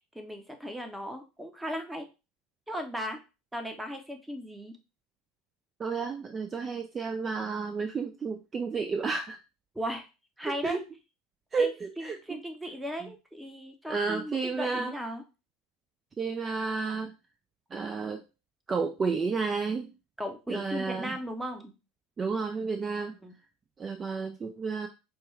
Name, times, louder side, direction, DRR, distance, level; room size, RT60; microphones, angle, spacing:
voice 1, 0.1-2.1 2.7-3.2 3.5-4.8 9.7-10.1 10.4-10.8 11.6-11.7 12.0-15.2 20.2-21.7 23.2-23.3, equal, 5° right, 5 dB, 0.8 m, -37 dB
voice 2, 5.8-9.4 10.4-10.8 11.5-12.4 13.9-14.9 16.2-17.1 17.7-18.2 18.7-19.9 20.5-21.2 22.2-23.1 23.8-24.9, right 4 dB, 25° right, 5 dB, 0.4 m, -31 dB
4.4 x 2.2 x 3.2 m, 0.29 s
hypercardioid pair, 75°, 0 cm